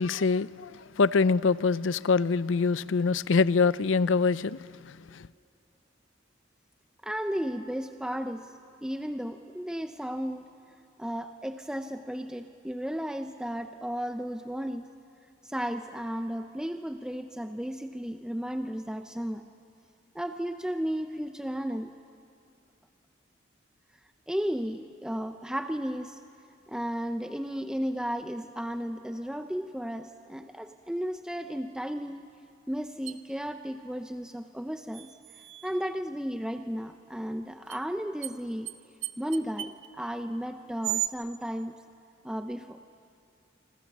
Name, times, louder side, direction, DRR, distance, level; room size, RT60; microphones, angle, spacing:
voice 1, 0.0-5.3, left 4 dB, 85° left, 0.5 m, -25 dB
voice 2, 7.0-10.5 11.0-14.9 15.4-19.4 20.1-21.9 24.3-26.2 26.7-32.2 32.7-35.1 35.6-38.7 39.2-41.8 42.2-42.8, equal, 5° right, 0.6 m, -34 dB
sound 1, 33.1-33.2 34.9-36.0 37.7-37.8 38.2-38.3 38.7-38.8 39.0-39.9 40.8-41.1, right 14 dB, 85° right, 0.8 m, -35 dB
26.5 x 26.5 x 7.3 m
head